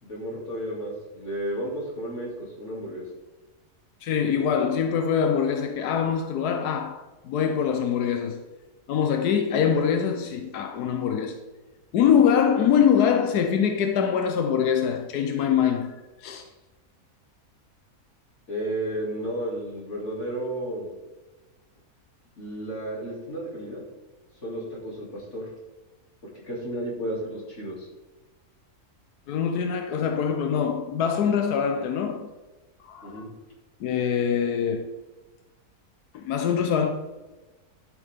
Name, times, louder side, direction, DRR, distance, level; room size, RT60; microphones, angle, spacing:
voice 1, 0.0-3.0 18.5-20.9 22.4-23.8 24.4-25.5 26.2-27.9 33.0-33.3, right 1 dB, 50° left, 3.0 m, -33 dB
voice 2, 4.0-8.4 8.9-11.4 11.9-16.5 29.3-32.3 32.8-33.2 33.8-35.0 36.1-36.9, left 7 dB, 90° left, 1.3 m, -24 dB
12.0 x 6.6 x 3.6 m
omnidirectional pair, 1.6 m